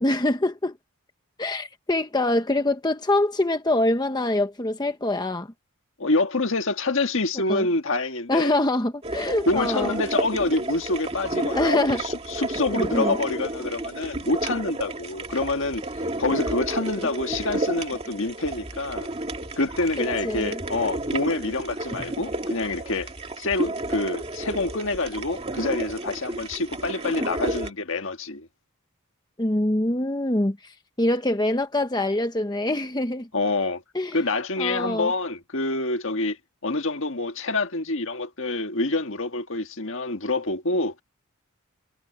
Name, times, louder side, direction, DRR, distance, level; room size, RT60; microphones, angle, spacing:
voice 1, 0.0-0.8 1.4-5.5 7.5-7.7 8.3-10.0 11.5-12.0 12.7-13.2 16.7-16.8 17.3-17.6 20.0-20.6 29.4-33.3 33.9-34.2 34.6-35.1, left 1 dB, 20° left, 0.9 m, -25 dB
voice 2, 6.0-8.6 9.5-15.8 16.2-19.1 19.6-23.1 23.4-28.5 33.3-33.8 34.1-36.4 36.6-40.9, left 2 dB, 60° left, 1.7 m, -26 dB
sound 1, 9.0-27.7, right 2 dB, 25° right, 2.1 m, -31 dB
head